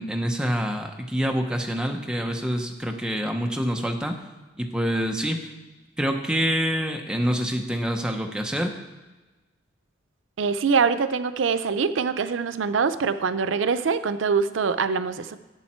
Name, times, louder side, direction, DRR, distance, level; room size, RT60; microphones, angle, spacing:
voice 1, 0.0-4.1 4.6-5.4 6.0-8.7, equal, 5° right, 3 dB, 0.9 m, -26 dB
voice 2, 10.4-15.4, right 5 dB, 90° right, 12 dB, 0.5 m, -24 dB
11.5 x 8.0 x 4.4 m, 1.2 s
head